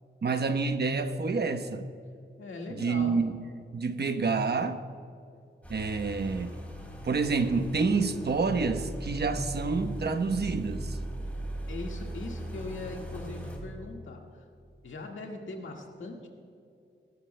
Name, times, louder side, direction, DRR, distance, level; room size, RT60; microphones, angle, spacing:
voice 1, 0.2-1.9 2.8-3.3 3.7-4.8 5.7-6.6 7.0-11.0, right 4 dB, 55° right, 7 dB, 1.0 m, -28 dB
voice 2, 2.4-3.2 11.7-14.4 14.8-16.3, left 2 dB, 90° left, 1 dB, 1.8 m, -40 dB
sound 1, 5.6-13.6, right 1 dB, 5° left, 3.4 m, -38 dB
22.5 x 12.5 x 2.2 m, 2.5 s
cardioid pair, 70°, 19 cm